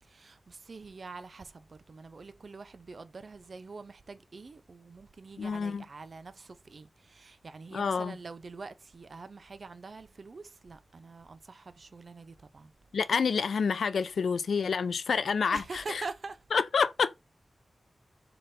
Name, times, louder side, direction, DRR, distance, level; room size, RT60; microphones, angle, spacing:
voice 1, 0.0-12.7 15.5-16.4, right 4 dB, 50° right, 0.4 m, -45 dB
voice 2, 5.4-5.8 7.7-8.2 12.9-16.0 16.5-17.2, left 5 dB, 90° left, 0.4 m, -28 dB
3.9 x 3.2 x 3.9 m
wide cardioid pair, 135°, 0 cm